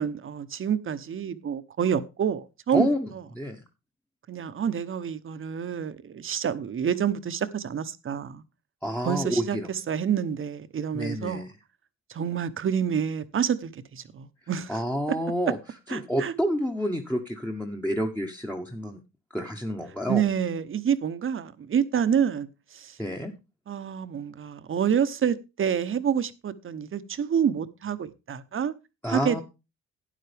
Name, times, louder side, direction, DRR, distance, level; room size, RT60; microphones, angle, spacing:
voice 1, 0.0-2.9 3.1-3.2 4.3-8.4 9.0-11.4 12.1-14.8 15.9-16.3 20.1-23.0 23.7-28.7 29.1-29.4, right 8 dB, 45° right, 0.9 m, -28 dB
voice 2, 2.7-3.6 8.8-9.7 10.9-11.5 14.7-15.6 15.9-19.0 19.3-20.2 23.0-23.3 29.0-29.4, equal, 5° left, 1.1 m, -29 dB
12.5 x 9.4 x 3.4 m
cardioid pair, 90°, 30 cm